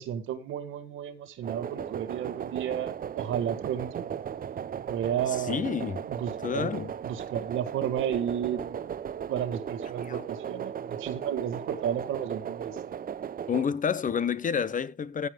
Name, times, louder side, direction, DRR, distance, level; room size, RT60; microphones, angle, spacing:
voice 1, 0.0-4.0 4.9-5.6 6.1-6.7 7.0-8.9 9.3-12.8, right 9 dB, 85° right, 1.9 m, -32 dB
sound 1, 1.4-13.6, right 8 dB, 45° right, 0.8 m, -36 dB
voice 2, 5.5-6.1 6.4-6.9 10.0-10.2 13.5-15.3, left 7 dB, 40° left, 0.9 m, -29 dB
15.5 x 5.6 x 5.1 m
cardioid pair, 90°, 20 cm